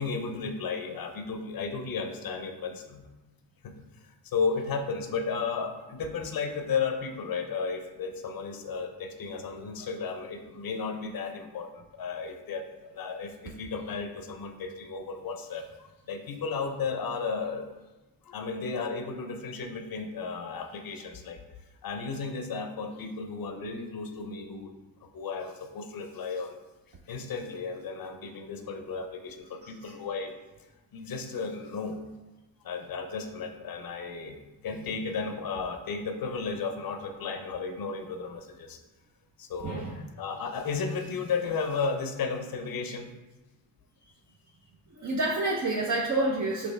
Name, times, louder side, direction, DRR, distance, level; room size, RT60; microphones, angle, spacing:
voice 1, 0.0-3.1 3.6-3.7 4.2-17.7 18.2-21.4 21.8-24.7 25.0-26.6 27.1-30.3 30.9-32.0 32.6-38.8 39.4-39.9 40.2-43.1, left 5 dB, 50° left, 6 dB, 0.7 m, -34 dB
voice 2, 39.6-39.9 44.9-46.7, right 2 dB, 40° right, -3 dB, 0.7 m, -28 dB
5.4 x 2.9 x 3.3 m, 1.1 s
cardioid pair, 70°, 44 cm